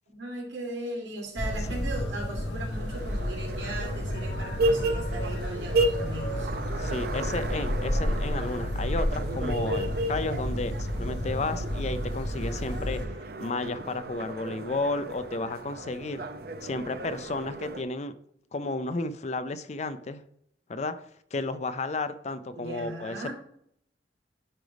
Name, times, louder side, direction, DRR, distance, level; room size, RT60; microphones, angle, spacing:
voice 1, 0.1-6.5 22.5-23.3, right 1 dB, 85° right, -2 dB, 2.8 m, -38 dB
sound 1, 1.4-13.0, equal, 65° left, 1.3 m, -31 dB
sound 2, 2.7-17.8, right 2 dB, 55° right, 0.6 m, -33 dB
voice 2, 6.8-16.3 16.6-18.1 18.5-20.2 20.7-21.0 21.3-23.3, left 2 dB, 35° left, 11 dB, 0.5 m, -32 dB
10.0 x 3.4 x 4.8 m, 0.69 s
head